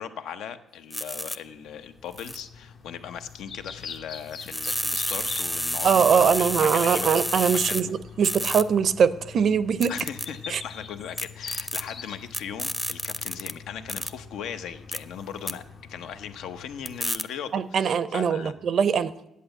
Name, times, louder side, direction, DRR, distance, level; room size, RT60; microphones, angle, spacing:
voice 1, 0.0-7.2 7.5-8.0 9.9-15.6 15.9-18.6, left 8 dB, 85° left, 9 dB, 0.8 m, -38 dB
sound 1, 0.9-1.4 2.2-2.4 4.4-7.8 8.2-8.6 9.8-10.3 11.2-11.8 12.3-13.5 13.9-14.1 14.9-15.0 15.5-15.6 16.9-17.2, equal, 5° left, 0.6 m, -29 dB
sound 2, 1.4-17.1, left 6 dB, 65° left, 1.1 m, -44 dB
voice 2, 5.8-9.9 10.5-10.6 17.5-19.1, right 7 dB, 60° right, 16 dB, 0.6 m, -22 dB
8.5 x 8.1 x 8.8 m, 0.87 s
cardioid pair, 90°, 0 cm